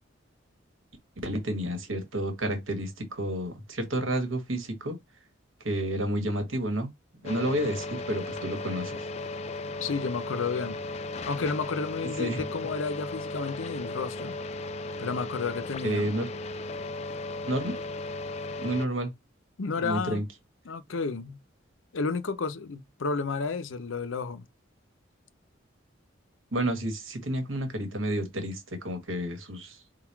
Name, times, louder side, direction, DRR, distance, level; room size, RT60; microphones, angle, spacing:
voice 1, 1.2-5.0 5.6-9.1 12.2-12.4 15.8-16.3 17.5-17.8 18.6-19.1 19.8-20.2 26.5-29.8, right 1 dB, 85° right, 1.4 m, -30 dB
sound 1, 7.2-18.9, left 2 dB, 35° left, 0.3 m, -36 dB
voice 2, 9.8-10.8 11.2-14.4 15.0-16.1 19.6-20.2 20.6-21.4 21.9-24.4, left 4 dB, 80° left, 0.6 m, -31 dB
3.9 x 2.3 x 4.6 m
head